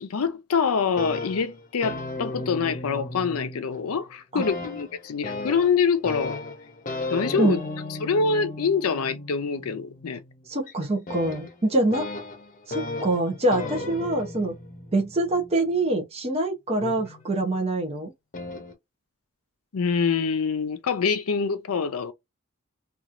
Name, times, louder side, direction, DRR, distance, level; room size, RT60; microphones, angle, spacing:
voice 1, 0.0-6.4 7.1-7.6 7.9-10.2 19.7-22.1, left 5 dB, 85° left, 0.5 m, -25 dB
sound 1, 0.8-4.1 4.4-16.0 16.8-17.6 18.3-18.7, left 2 dB, 40° left, 0.7 m, -35 dB
voice 2, 10.5-12.1 12.7-14.5 14.9-18.1, right 2 dB, 30° right, 0.7 m, -25 dB
2.9 x 2.4 x 2.5 m
head